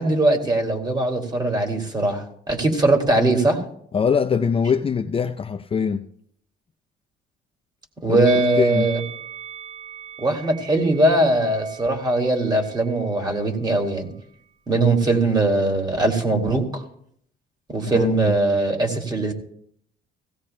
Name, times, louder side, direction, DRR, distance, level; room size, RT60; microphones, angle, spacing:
voice 1, 0.0-3.6 8.0-9.0 10.2-14.1 14.7-16.8 17.7-19.3, right 2 dB, 20° right, 2.3 m, -20 dB
voice 2, 3.9-6.1 8.1-8.2 8.6-8.9 17.9-18.3, left 6 dB, 30° left, 0.5 m, -22 dB
Musical instrument, 8.2-13.5 13.7-14.0, right 9 dB, 40° right, 5.3 m, -39 dB
16.5 x 16.0 x 2.2 m
cardioid pair, 95°, 19 cm